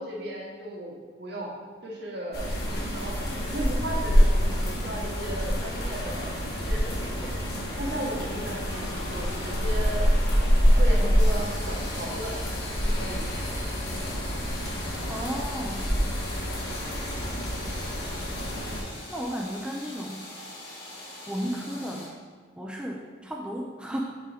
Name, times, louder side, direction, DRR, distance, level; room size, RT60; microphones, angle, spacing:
voice 1, 0.0-1.5 1.8-3.2 3.5-6.3 6.6-7.3 7.8-10.0 10.8-12.4 12.8-13.3, right 1 dB, 60° right, -2 dB, 1.2 m, -35 dB
sound 1, 2.3-18.8, equal, 55° left, 1.4 m, -26 dB
sound 2, 8.7-22.1, left 1 dB, 80° left, 1.8 m, -43 dB
voice 2, 15.1-15.9 19.1-20.3 21.3-22.1 22.6-24.0, equal, 5° right, -1 dB, 0.4 m, -34 dB
6.5 x 4.8 x 3.4 m, 1.5 s
head